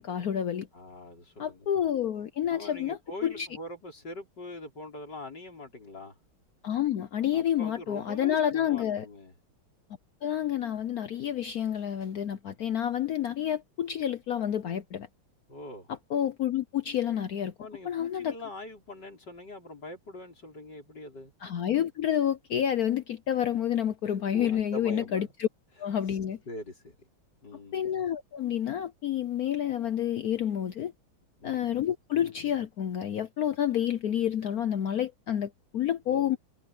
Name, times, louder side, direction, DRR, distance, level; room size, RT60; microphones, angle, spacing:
voice 1, 0.0-0.7 1.4-3.5 6.6-9.1 10.2-15.1 16.1-17.5 17.8-18.3 21.4-25.5 25.8-26.4 27.7-30.9 31.4-36.4, left 10 dB, 70° left, 0.9 m, -29 dB
voice 2, 0.7-1.7 2.5-6.2 7.3-9.3 15.5-15.9 17.6-21.3 24.3-25.3 26.1-26.2 26.5-27.0 27.4-27.9 31.4-31.7 36.1-36.4, left 1 dB, 50° left, 5.9 m, -43 dB
omnidirectional pair, 2.3 m